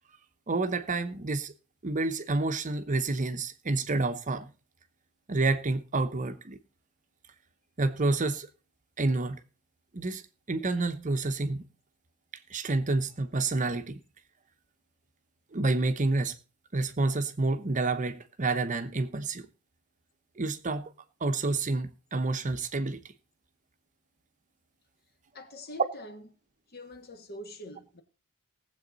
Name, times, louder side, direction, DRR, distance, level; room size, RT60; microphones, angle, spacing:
voice 1, 0.5-1.5 1.8-4.5 5.3-6.6 7.8-8.5 9.0-9.4 9.9-10.2 10.5-11.7 12.5-14.0 15.5-16.4 16.7-19.4 20.4-20.9 21.2-23.0, right 3 dB, 35° right, 0.9 m, -29 dB
voice 2, 25.3-26.2 26.7-28.0, left 1 dB, 45° left, 1.6 m, -44 dB
18.5 x 7.8 x 4.0 m
head